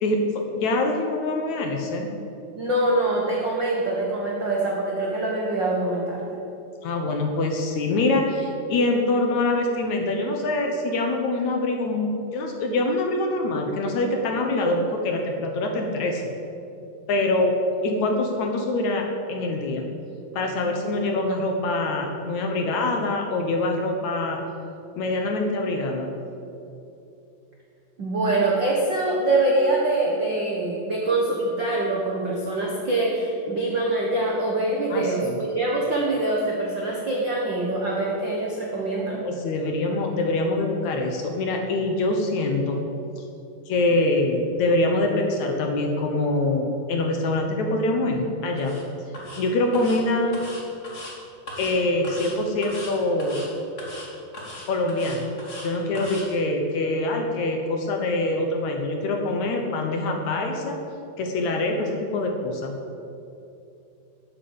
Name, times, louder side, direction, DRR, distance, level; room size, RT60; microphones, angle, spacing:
voice 1, 0.0-2.2 6.8-16.3 17.1-17.5 17.8-19.9 20.3-24.4 25.0-26.1 34.9-35.4 39.3-42.8 43.2-43.3 43.7-48.8 49.4-50.4 51.6-53.4 54.7-55.2 55.6-60.8 61.2-62.8, left 2 dB, 65° left, 3 dB, 1.9 m, -24 dB
voice 2, 2.5-6.4 28.0-39.2, right 2 dB, 75° right, -3 dB, 1.0 m, -24 dB
sound 1, 48.6-48.8 49.1-49.4 49.7-50.0 50.3-51.1 51.5-51.7 52.0-52.3 52.6-52.9 53.2-53.5 53.8-54.1 54.3-55.7 55.9-56.2, left 1 dB, 25° left, 1.9 m, -38 dB
12.0 x 8.0 x 8.7 m, 2.7 s
omnidirectional pair, 4.7 m